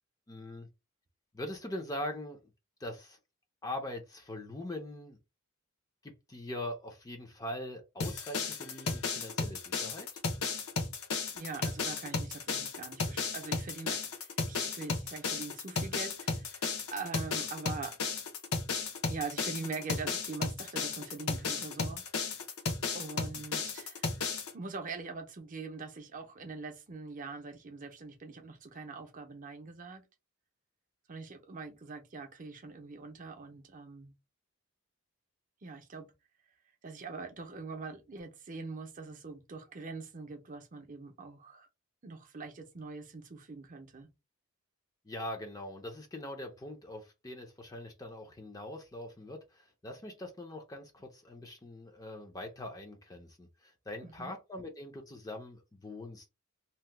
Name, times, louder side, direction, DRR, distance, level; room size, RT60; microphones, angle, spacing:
voice 1, 0.3-0.7 1.3-2.5 2.8-3.2 3.6-5.2 6.0-10.1 45.0-56.3, left 1 dB, 15° left, 0.5 m, -42 dB
sound 1, 8.0-24.5, left 4 dB, 70° left, 0.8 m, -34 dB
voice 2, 11.3-18.0 19.1-22.0 22.9-24.3 24.5-30.0 31.1-34.1 35.6-36.1 36.8-41.7 42.0-44.1 54.0-54.3, right 4 dB, 35° right, 0.6 m, -43 dB
2.8 x 2.2 x 3.3 m
head